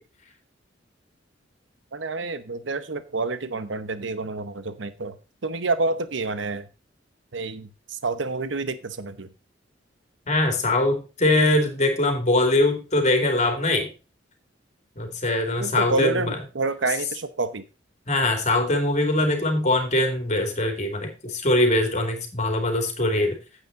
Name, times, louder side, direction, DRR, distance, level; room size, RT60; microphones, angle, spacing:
voice 1, 1.9-5.2 5.4-6.7 7.3-9.3 15.5-17.6, right 3 dB, 75° right, 12 dB, 0.9 m, -28 dB
voice 2, 10.3-13.9 15.0-16.4 18.1-23.4, left 2 dB, 40° left, 4 dB, 2.6 m, -22 dB
9.5 x 8.2 x 4.0 m, 0.31 s
head